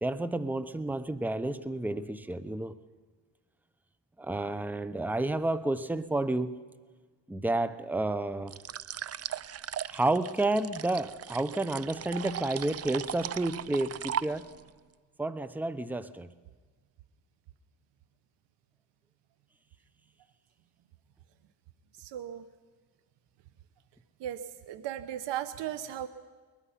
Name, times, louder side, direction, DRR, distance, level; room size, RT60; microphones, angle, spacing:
voice 1, 0.0-2.8 4.2-6.6 7.3-8.6 9.9-14.5 15.2-16.3, right 2 dB, 5° right, 14 dB, 0.8 m, -30 dB
sound 1, 8.5-14.7, right 10 dB, 35° right, 0.5 m, -38 dB
voice 2, 22.0-22.4 24.2-24.4 24.7-26.1, right 11 dB, 80° right, 12 dB, 0.9 m, -36 dB
22.0 x 20.5 x 5.8 m, 1.4 s
cardioid pair, 85°, 42 cm